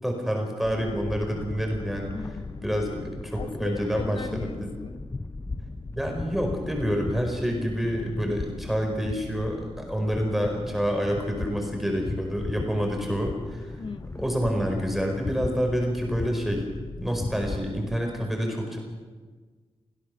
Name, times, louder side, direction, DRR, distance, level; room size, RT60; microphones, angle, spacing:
voice 1, 0.0-2.1 2.6-4.7 5.9-13.8 14.2-16.7 17.0-18.8, equal, ahead, 1 dB, 5.0 m, -28 dB
sound 1, 0.6-18.1, left 3 dB, 25° left, 0.8 m, -37 dB
voice 2, 2.0-2.8 3.4-5.1 13.8-14.2, left 4 dB, 55° left, 9 dB, 1.6 m, -38 dB
25.5 x 17.0 x 6.9 m, 1.4 s
wide cardioid pair, 155°, 10 cm